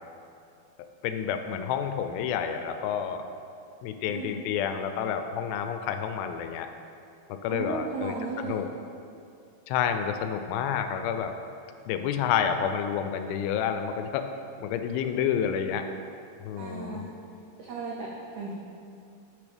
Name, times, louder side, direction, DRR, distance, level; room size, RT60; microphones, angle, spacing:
voice 1, 1.0-3.3 3.8-6.7 7.3-8.7 9.7-11.3 11.9-14.3 14.6-15.9 16.4-17.1, left 8 dB, 85° left, 8 dB, 2.3 m, -29 dB
voice 2, 4.0-4.4 7.5-8.6 16.6-17.1 17.6-18.5, right 3 dB, 85° right, -3 dB, 1.6 m, -35 dB
10.5 x 6.4 x 3.4 m, 2.5 s
omnidirectional pair, 4.3 m